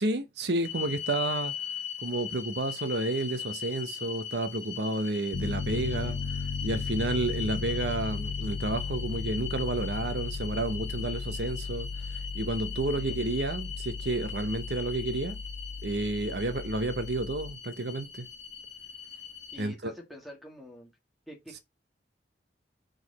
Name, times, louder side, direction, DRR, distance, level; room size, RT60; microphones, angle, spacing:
voice 1, 0.0-1.5 2.0-15.4 15.8-18.3 19.6-19.9, right 2 dB, 65° right, 0.9 m, -31 dB
sound 1, 0.6-19.6, left 8 dB, 90° left, 1.0 m, -40 dB
Piano, 5.3-17.5, left 4 dB, 65° left, 0.4 m, -36 dB
voice 2, 5.7-6.3 12.9-13.2 16.3-16.6 19.5-20.9 21.3-21.6, equal, ahead, 2.2 m, -48 dB
6.4 x 4.9 x 4.1 m
head